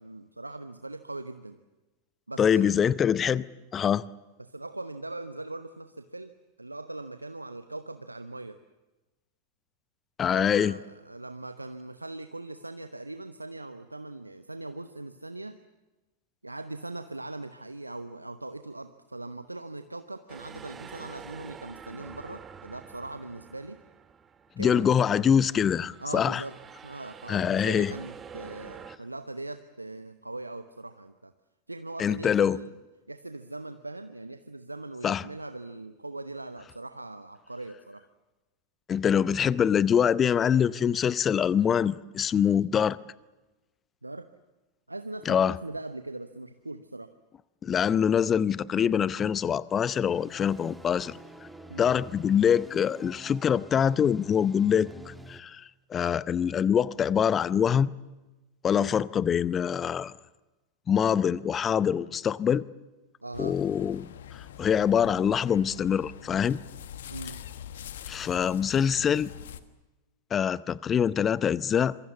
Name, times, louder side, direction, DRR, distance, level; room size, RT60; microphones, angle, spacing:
voice 1, 0.0-1.6 2.3-2.9 4.4-8.6 10.3-15.6 16.4-23.8 24.6-24.9 26.0-26.6 26.8-31.3 31.7-32.7 33.1-38.1 44.0-44.3 44.9-47.1 51.7-51.9 58.7-59.0 63.2-63.5 67.1-67.4, right 2 dB, 85° right, 0.9 m, -40 dB
voice 2, 2.4-3.5 3.7-4.0 10.2-10.8 24.6-26.4 27.3-27.9 32.0-32.6 35.0-35.2 38.9-43.0 45.3-45.6 47.6-51.2 51.8-57.9 58.6-60.1 60.9-62.6 63.4-64.1 64.3-66.6 68.1-69.3 70.3-72.0, left 8 dB, 25° left, 0.7 m, -24 dB
sound 1, 20.3-24.9 25.3-29.0, right 6 dB, 20° right, 1.4 m, -47 dB
sound 2, 49.7-55.4, right 1 dB, 5° right, 1.8 m, -48 dB
sound 3, 63.3-69.6, left 10 dB, 60° left, 1.4 m, -44 dB
26.5 x 23.5 x 7.2 m
figure-of-eight pair, 90°, 0 cm